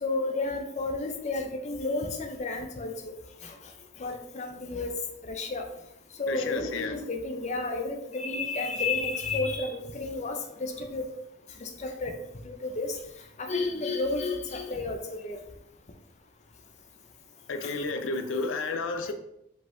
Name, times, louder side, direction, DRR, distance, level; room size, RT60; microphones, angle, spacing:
voice 1, 0.0-2.9 3.4-3.5 4.0-4.9 5.2-5.7 6.2-11.0 11.6-12.1 12.4-12.9 13.4-15.4 17.6-17.7, left 3 dB, 40° left, 5 dB, 0.6 m, -31 dB
voice 2, 6.3-7.0 17.5-19.1, left 3 dB, 90° left, 7 dB, 0.5 m, -31 dB
5.1 x 3.9 x 2.7 m, 0.80 s
head